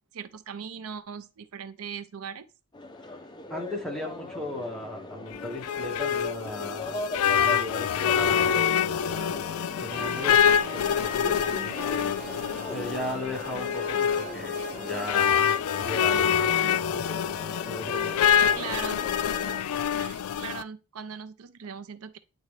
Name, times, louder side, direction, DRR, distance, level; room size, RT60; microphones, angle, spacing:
voice 1, 0.1-2.5 18.5-19.1 19.9-22.2, right 7 dB, 80° right, 0.5 m, -39 dB
sound 1, 2.7-19.6, left 2 dB, 20° left, 0.5 m, -40 dB
voice 2, 3.5-7.0 7.3-12.4 12.7-15.5 15.8-17.4 17.7-18.3, left 1 dB, ahead, 1.5 m, -37 dB
sound 2, 5.3-20.6, left 8 dB, 80° left, 0.3 m, -26 dB
sound 3, 9.9-15.4, right 4 dB, 35° right, 0.9 m, -43 dB
9.2 x 3.8 x 3.2 m
head